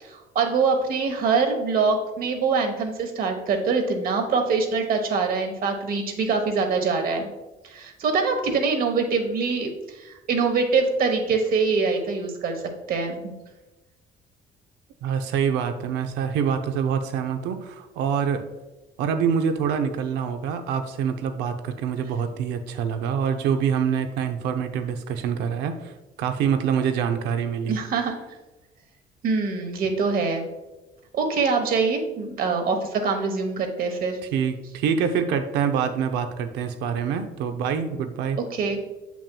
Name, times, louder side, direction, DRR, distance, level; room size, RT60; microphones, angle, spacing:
voice 1, 0.0-7.3 7.6-12.6 12.9-13.3 27.7-28.1 29.2-30.5 31.1-34.2 38.5-38.8, right 4 dB, 60° right, 4 dB, 1.1 m, -24 dB
voice 2, 15.0-18.4 19.0-25.9 26.2-27.8 34.3-38.4, right 7 dB, 90° right, 7 dB, 0.6 m, -25 dB
7.2 x 5.9 x 2.3 m, 1.1 s
cardioid pair, 110°, 17 cm